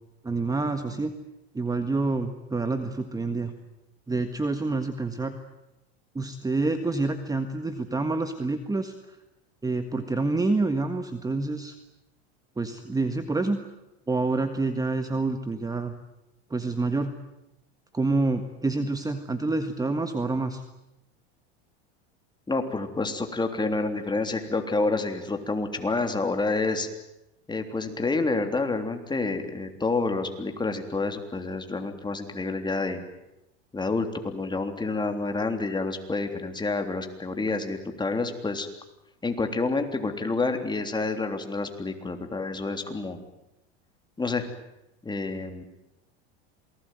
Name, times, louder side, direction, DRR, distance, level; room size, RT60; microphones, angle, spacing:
voice 1, 0.2-1.1 1.5-3.5 4.1-5.4 6.2-8.9 9.6-11.7 12.6-13.6 14.1-15.9 16.5-17.1 17.9-20.6, right 3 dB, 10° right, 8 dB, 1.6 m, -27 dB
voice 2, 22.5-26.9 27.5-33.0 33.7-38.7 39.2-43.2 44.2-44.5 45.0-45.6, left 3 dB, 15° left, 5 dB, 3.4 m, -28 dB
27.5 x 19.5 x 9.3 m, 0.91 s
supercardioid pair, 110°, 32 cm